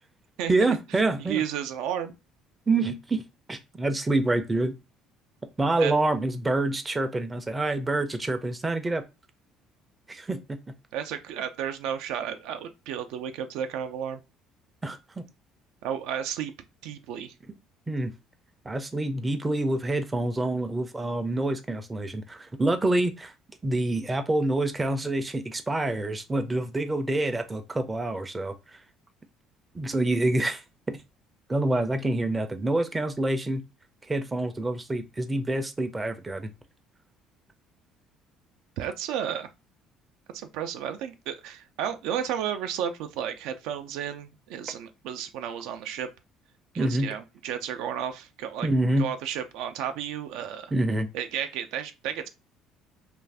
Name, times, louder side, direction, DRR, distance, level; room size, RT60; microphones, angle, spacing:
voice 1, 0.5-1.4 2.7-4.7 5.6-9.0 10.1-10.4 14.8-15.2 17.9-18.1 18.7-23.3 23.6-28.5 29.7-30.6 30.9-31.0 31.5-33.6 34.1-36.5 46.8-47.1 48.6-49.1 50.7-51.1, right 2 dB, 15° right, 0.4 m, -27 dB
voice 2, 1.2-2.1 5.8-5.9 10.9-14.2 15.8-16.5 16.8-17.3 38.8-39.5 40.3-46.1 46.7-48.7 49.0-50.7 51.1-52.3, right 9 dB, 85° right, 0.3 m, -32 dB
2.5 x 2.3 x 3.3 m
cardioid pair, 120°, 0 cm